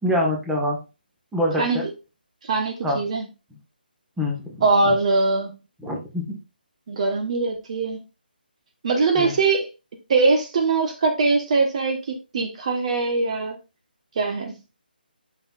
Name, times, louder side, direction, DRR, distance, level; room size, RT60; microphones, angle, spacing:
voice 1, 0.0-0.8 1.3-1.8 2.8-3.0 4.2-4.9 5.8-6.4 9.2-9.3, left 1 dB, 5° right, -2 dB, 1.4 m, -25 dB
voice 2, 2.4-3.2 4.6-5.5 6.9-8.0 8.8-9.7 10.1-12.0 12.3-13.6 14.2-14.6, right 3 dB, 40° right, 4 dB, 1.1 m, -21 dB
7.7 x 5.7 x 2.4 m, 0.28 s
figure-of-eight pair, 145°, 5 cm